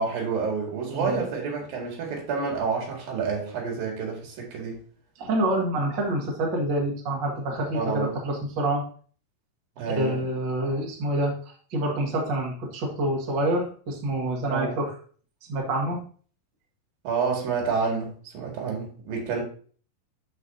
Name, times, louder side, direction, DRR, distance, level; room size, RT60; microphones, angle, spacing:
voice 1, 0.0-4.8 7.7-8.2 9.8-10.2 14.5-14.8 17.0-19.4, right 5 dB, 75° right, 3.7 m, -29 dB
voice 2, 5.2-8.8 9.9-14.9 15.5-16.0, right 1 dB, 40° right, 1.8 m, -27 dB
13.0 x 4.8 x 2.7 m
omnidirectional pair, 4.2 m